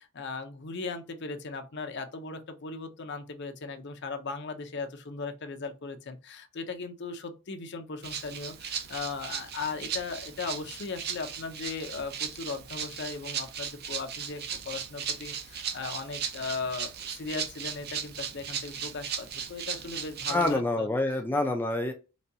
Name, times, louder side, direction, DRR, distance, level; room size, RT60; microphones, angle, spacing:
voice 1, 0.0-20.9, left 4 dB, 55° left, 0.6 m, -38 dB
Rattle (instrument), 8.0-20.6, right 7 dB, 50° right, 0.5 m, -37 dB
voice 2, 20.3-21.9, left 2 dB, 10° left, 0.4 m, -27 dB
4.0 x 2.3 x 2.7 m
head